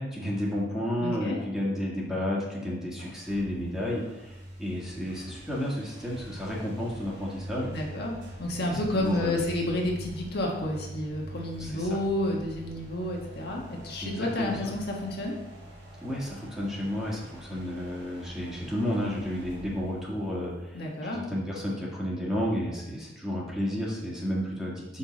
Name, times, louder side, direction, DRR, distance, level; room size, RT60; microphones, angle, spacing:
voice 1, 0.0-7.7 8.6-9.4 11.6-12.0 14.0-14.5 16.0-20.8 21.1-25.0, left 1 dB, 5° right, -5 dB, 1.8 m, -32 dB
voice 2, 1.0-1.4 7.7-8.1 8.4-15.3 20.7-21.2, left 1 dB, 60° left, -1 dB, 1.4 m, -30 dB
sound 1, 2.9-21.4, equal, 80° right, 2.8 m, -45 dB
7.1 x 5.5 x 4.1 m, 0.99 s
head